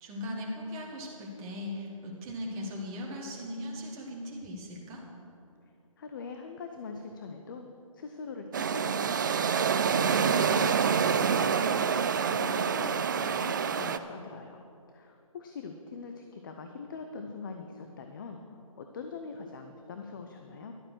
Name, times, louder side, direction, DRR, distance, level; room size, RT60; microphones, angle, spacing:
voice 1, 0.0-5.0 10.1-10.7, left 1 dB, 15° right, -2 dB, 1.7 m, -38 dB
voice 2, 6.0-7.7 7.9-20.7, left 4 dB, 35° left, 5 dB, 0.7 m, -43 dB
sound 1, 8.5-14.0, right 6 dB, 35° right, 0.4 m, -27 dB
12.0 x 8.6 x 6.3 m, 2.6 s
figure-of-eight pair, 145°, 18 cm